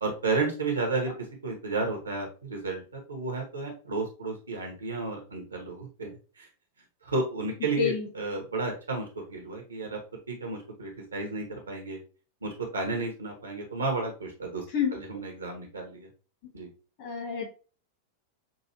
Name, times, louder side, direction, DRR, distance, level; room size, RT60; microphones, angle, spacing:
voice 1, 0.0-1.1 1.4-6.5 7.0-10.0 10.3-12.0 12.4-14.6 14.9-16.1 16.5-16.7, right 3 dB, 75° right, 2 dB, 1.2 m, -32 dB
voice 2, 17.0-17.5, left 7 dB, 50° left, -1 dB, 2.2 m, -28 dB
6.1 x 2.7 x 2.9 m, 0.36 s
figure-of-eight pair, 90°, 0 cm